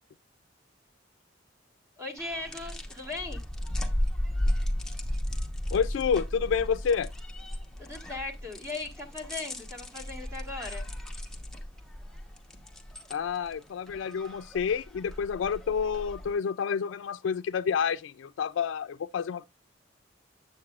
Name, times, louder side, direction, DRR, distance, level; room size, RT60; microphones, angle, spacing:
voice 1, 2.0-3.4 7.8-10.9, left 3 dB, 15° right, 1.8 m, -38 dB
sound 1, 2.2-16.3, left 1 dB, 5° left, 0.9 m, -35 dB
voice 2, 5.7-7.1 13.1-19.4, left 6 dB, 80° left, 0.3 m, -29 dB
8.6 x 7.6 x 2.4 m
head